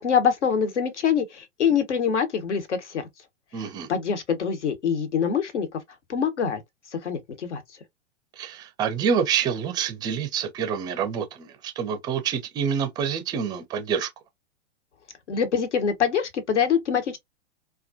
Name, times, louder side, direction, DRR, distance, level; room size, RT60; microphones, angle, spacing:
voice 1, 0.0-3.0 3.9-5.7 6.1-6.6 7.0-7.6 15.3-17.2, left 7 dB, 70° left, 0.9 m, -24 dB
voice 2, 3.5-3.9 8.4-14.1, right 7 dB, 10° right, 0.4 m, -27 dB
2.3 x 2.1 x 2.5 m
figure-of-eight pair, 105°, 36 cm